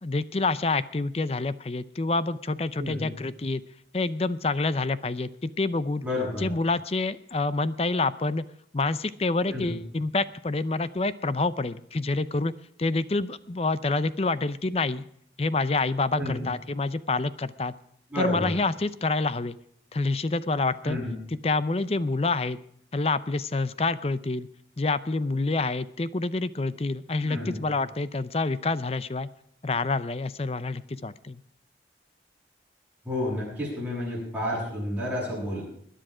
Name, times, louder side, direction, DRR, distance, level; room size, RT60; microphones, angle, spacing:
voice 1, 0.0-3.6 3.9-6.0 6.4-8.4 8.7-12.5 12.8-15.0 15.4-17.7 18.2-19.6 19.9-21.0 21.3-22.6 22.9-24.5 24.8-29.3 29.6-31.4, left 3 dB, 35° left, 16 dB, 0.5 m, -27 dB
voice 2, 2.8-3.1 6.0-6.5 9.5-9.8 16.1-16.4 18.1-18.5 20.8-21.2 27.2-27.6 33.0-35.6, left 1 dB, 5° right, -9 dB, 7.9 m, -30 dB
21.0 x 10.0 x 4.9 m, 0.66 s
head